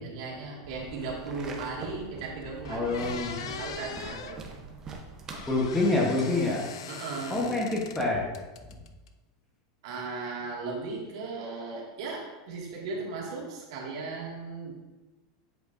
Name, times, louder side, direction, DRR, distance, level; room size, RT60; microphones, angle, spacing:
voice 1, 0.0-4.8 6.9-7.7 9.8-14.7, right 3 dB, 70° right, -4 dB, 2.0 m, -37 dB
sound 1, 0.6-5.7, right 3 dB, 20° right, 0.8 m, -44 dB
sound 2, 2.2-2.3 2.6-4.4 5.3-8.1 8.3-9.1, left 7 dB, 90° left, 0.5 m, -41 dB
voice 2, 2.7-3.4 5.5-6.6 7.3-8.3 8.7-8.8, left 2 dB, 5° left, -3 dB, 1.1 m, -27 dB
8.1 x 6.1 x 2.6 m, 1.2 s
supercardioid pair, 160°, 3 cm